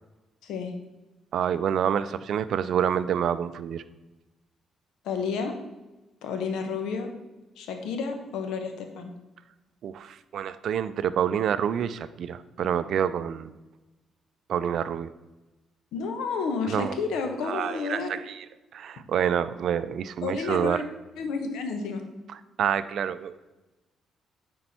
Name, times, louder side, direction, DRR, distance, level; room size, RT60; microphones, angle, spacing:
voice 1, 0.4-0.7 5.0-5.5 6.2-7.1 7.6-9.1 15.9-18.2 20.2-20.8 21.2-22.0, left 5 dB, 85° left, 5 dB, 1.1 m, -31 dB
voice 2, 1.3-3.8 9.8-13.5 14.5-15.1 16.7-16.9 17.4-18.5 18.7-20.8 22.3-23.4, right 8 dB, 65° right, 14 dB, 0.4 m, -27 dB
9.5 x 4.5 x 4.3 m, 1.1 s
cardioid pair, 90°, 0 cm